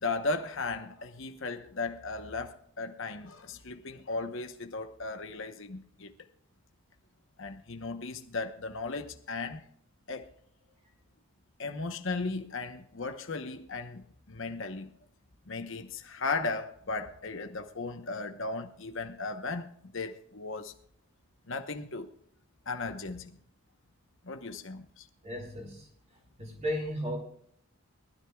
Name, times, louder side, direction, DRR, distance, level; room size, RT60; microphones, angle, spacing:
voice 1, 0.0-6.1 7.4-9.6 10.1-10.3 11.6-14.9 15.5-20.7 21.5-22.1 22.7-23.3 24.2-25.1, left 3 dB, 55° left, 1.0 m, -36 dB
voice 2, 25.2-25.9 26.4-27.2, equal, 30° right, 4.6 m, -34 dB
23.0 x 13.0 x 2.3 m
head